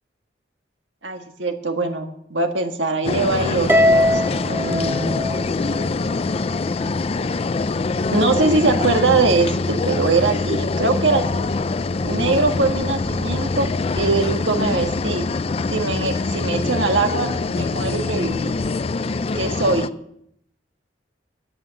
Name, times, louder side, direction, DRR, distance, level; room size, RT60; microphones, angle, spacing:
voice 1, 1.0-5.3 8.1-11.5 12.0-13.7 14.0-15.2 15.7-18.5 19.3-19.9, right 3 dB, 90° right, 5 dB, 1.7 m, -22 dB
sound 1, 3.0-19.9, left 3 dB, 35° left, 0.4 m, -24 dB
Harp, 3.7-6.2, left 1 dB, 15° right, 0.7 m, -20 dB
12.0 x 8.8 x 7.0 m, 0.74 s
head